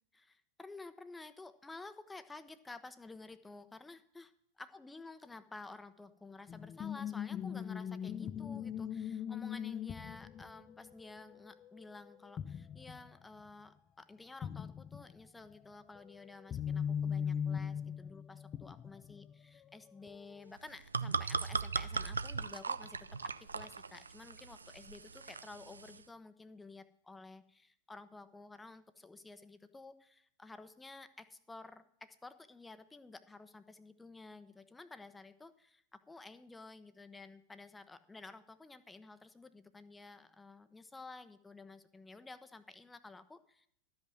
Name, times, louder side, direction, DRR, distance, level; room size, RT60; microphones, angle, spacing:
voice 1, 0.1-4.3 4.6-23.1 23.4-43.7, left 3 dB, 10° left, 12 dB, 0.8 m, -52 dB
sound 1, 6.5-12.1 12.4-13.1 13.4-13.5 14.4-15.2 16.0-19.3 20.1-20.5, left 8 dB, 30° left, 0.4 m, -40 dB
sound 2, 20.6-26.0, right 5 dB, 85° right, 0.3 m, -39 dB
12.5 x 5.6 x 7.6 m, 0.69 s
figure-of-eight pair, 90°, 0 cm